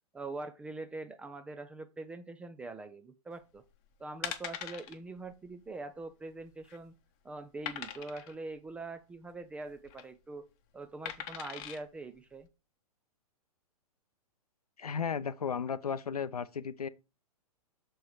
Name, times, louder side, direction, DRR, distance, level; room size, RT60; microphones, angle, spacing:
voice 1, 0.1-3.6 4.0-6.9 7.2-10.5 10.7-12.5, right 2 dB, 5° right, 0.3 m, -43 dB
sound 1, 3.6-3.8 4.2-5.0 5.3-5.5 5.7-5.8 6.4-6.9 7.7-8.3 9.7-10.0 11.1-11.8 12.4-12.5, left 10 dB, 30° left, 0.8 m, -41 dB
voice 2, 14.8-16.9, left 6 dB, 75° left, 0.6 m, -34 dB
6.8 x 4.5 x 4.6 m
figure-of-eight pair, 110°, 20 cm